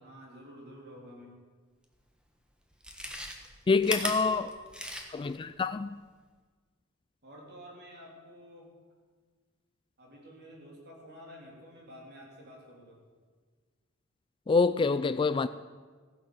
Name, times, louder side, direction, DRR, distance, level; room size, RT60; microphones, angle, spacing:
voice 1, 0.0-1.3 3.9-4.5 7.2-8.7 10.0-13.0, equal, 50° right, 3.7 m, -50 dB
Chewing mastication, 1.9-2.0 2.7-5.4 5.7-5.8, equal, 5° right, 1.4 m, -37 dB
voice 2, 3.7-4.4 5.1-6.0 14.5-15.5, left 4 dB, 25° left, 0.3 m, -26 dB
15.5 x 10.5 x 7.0 m
head